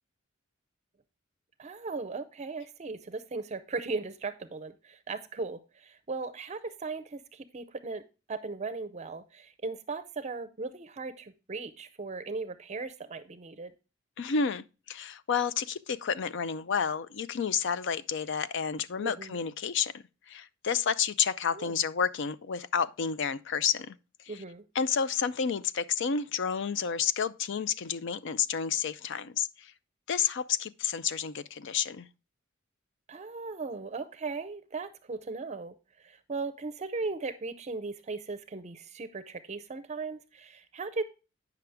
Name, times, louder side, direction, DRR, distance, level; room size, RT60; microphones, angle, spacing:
voice 1, 1.6-8.0 8.3-13.7 19.0-19.4 21.5-21.8 24.3-24.6 33.1-41.0, right 3 dB, 35° right, 0.5 m, -37 dB
voice 2, 14.2-24.0 24.3-24.4 24.7-29.7 30.1-32.1, left 7 dB, 65° left, 0.5 m, -30 dB
9.2 x 5.8 x 3.4 m
head